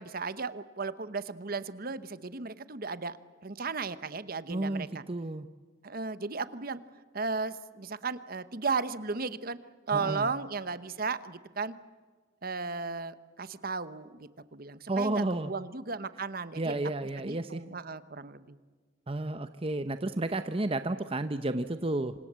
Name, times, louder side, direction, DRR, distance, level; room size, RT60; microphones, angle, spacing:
voice 1, 0.0-3.2 3.4-5.0 5.8-6.8 7.1-9.6 9.9-11.8 12.4-16.8 17.2-18.6, right 4 dB, 50° right, 14 dB, 1.1 m, -35 dB
voice 2, 4.5-5.5 9.9-10.3 14.9-15.5 16.5-17.6 19.1-22.1, right 2 dB, 30° right, 10 dB, 0.8 m, -31 dB
27.5 x 26.0 x 7.5 m, 1.4 s
head